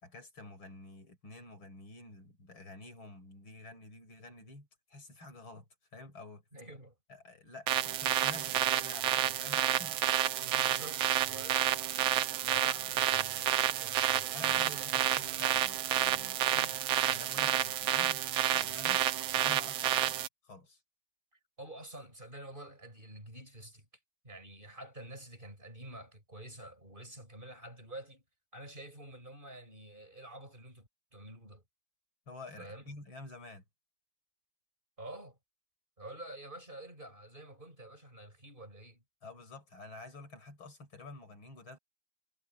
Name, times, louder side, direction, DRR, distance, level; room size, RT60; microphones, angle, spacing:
voice 1, 0.0-5.7 5.9-6.4 7.1-10.0 12.4-13.6 14.3-16.4 17.0-18.2 18.5-19.0 19.4-20.8 32.3-33.6 39.2-41.8, left 2 dB, 80° left, 5.9 m, -49 dB
voice 2, 6.5-6.9 10.4-11.7 12.5-15.2 16.5-16.8 21.6-23.9 24.2-28.2 28.5-31.6 32.6-32.9 35.0-35.4 36.0-39.0, right 1 dB, 25° right, 6.2 m, -48 dB
sound 1, 7.7-20.3, right 12 dB, 80° right, 1.6 m, -30 dB
omnidirectional pair, 2.2 m